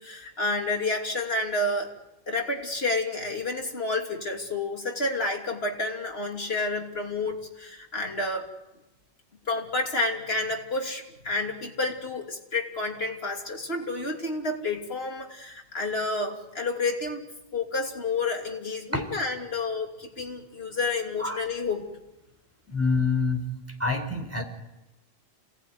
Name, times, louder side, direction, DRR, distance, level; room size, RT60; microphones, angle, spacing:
voice 1, 0.0-1.9 2.3-8.5 9.5-21.9, left 2 dB, 75° left, 2 dB, 3.2 m, -30 dB
voice 2, 22.7-23.5 23.8-24.4, left 4 dB, 15° right, 4 dB, 4.1 m, -26 dB
27.5 x 18.5 x 9.6 m, 0.98 s
omnidirectional pair, 1.0 m